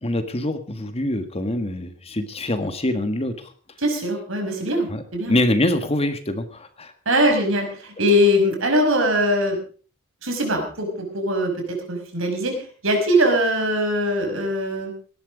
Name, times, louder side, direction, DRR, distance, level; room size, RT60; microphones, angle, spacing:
voice 1, 0.0-3.5 4.9-5.0 5.3-6.9, left 1 dB, 30° left, 9 dB, 1.7 m, -24 dB
voice 2, 3.8-4.9 5.1-5.3 7.1-9.6 10.2-14.9, equal, 65° right, 4 dB, 5.8 m, -21 dB
18.5 x 12.0 x 5.1 m, 0.41 s
head